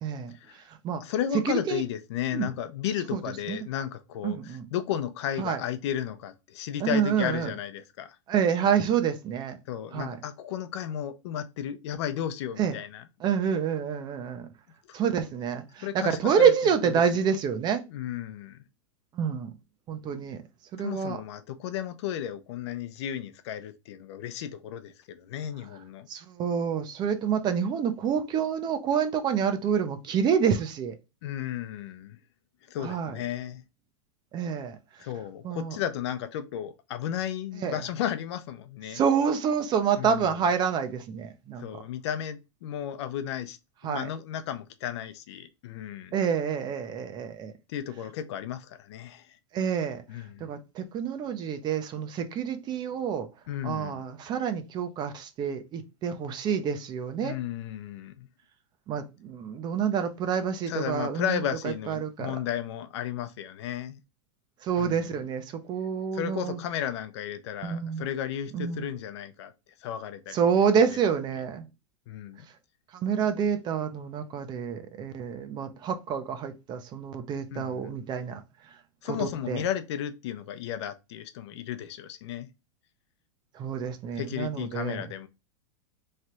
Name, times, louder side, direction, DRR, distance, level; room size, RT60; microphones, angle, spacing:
voice 1, 0.0-1.0 1.4-1.8 2.3-2.5 3.1-3.2 3.5-3.7 4.2-4.7 5.4-5.6 6.8-7.5 8.3-9.6 9.9-10.2 12.6-12.8 13.2-14.5 14.9-17.8 19.1-19.5 19.9-20.4 20.7-21.2 26.1-31.0 32.8-33.2 34.3-34.8 35.4-35.8 37.6-37.8 38.9-41.7 43.8-44.1 46.1-47.5 49.5-50.0 50.4-53.3 53.6-57.4 58.9-62.4 64.6-66.6 67.6-68.1 68.5-68.9 70.3-71.7 72.9-78.4 79.0-79.6 83.5-85.0, right 7 dB, 30° right, 0.6 m, -28 dB
voice 2, 1.0-8.2 9.7-13.0 14.9-15.0 15.8-16.5 17.9-18.6 20.8-26.1 31.2-32.2 32.7-33.6 35.0-39.0 40.0-40.3 41.6-43.6 43.8-46.1 47.7-49.4 50.1-50.5 53.5-54.0 57.2-58.3 60.7-64.0 64.8-65.1 66.1-69.5 69.8-70.4 72.1-72.4 77.5-78.0 79.0-82.5 84.2-85.3, left 10 dB, 65° left, 0.6 m, -34 dB
3.3 x 2.4 x 4.2 m
supercardioid pair, 135°, 15 cm